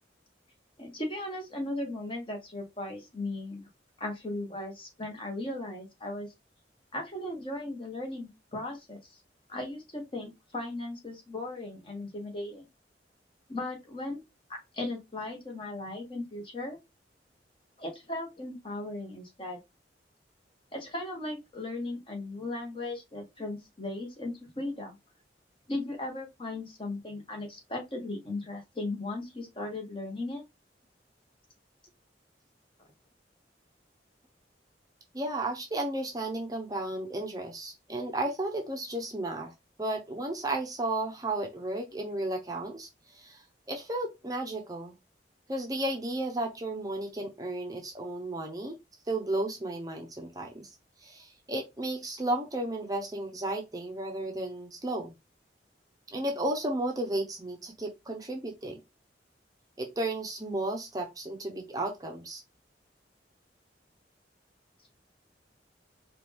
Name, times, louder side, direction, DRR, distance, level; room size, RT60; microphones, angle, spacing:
voice 1, 0.8-3.7 4.0-6.3 6.9-9.0 9.5-12.7 13.5-14.2 14.5-16.8 17.8-19.6 20.7-25.0 25.7-30.4, left 2 dB, 30° left, 1.4 m, -37 dB
voice 2, 35.1-39.5 39.8-45.0 45.5-48.8 49.1-50.7 51.0-55.1 56.1-58.8 59.8-62.4, right 1 dB, 20° right, 0.8 m, -33 dB
4.6 x 2.5 x 3.4 m
head